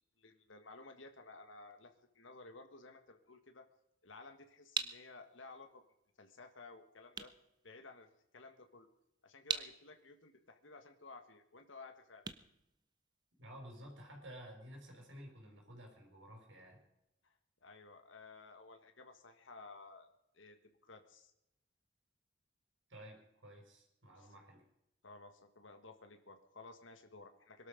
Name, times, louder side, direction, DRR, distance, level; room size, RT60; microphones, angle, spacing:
voice 1, 0.0-3.7 4.0-5.8 6.2-7.3 7.6-8.9 9.2-12.2 17.2-17.3 17.6-20.1 20.3-20.6 20.9-21.3 24.1-24.3 25.0-27.7, left 3 dB, 75° left, 7 dB, 1.7 m, -55 dB
sound 1, 4.1-13.5, right 5 dB, 20° right, 0.8 m, -46 dB
voice 2, 13.4-16.8 22.9-24.6, equal, 75° right, 1 dB, 5.6 m, -53 dB
22.0 x 12.0 x 5.2 m, 0.84 s
head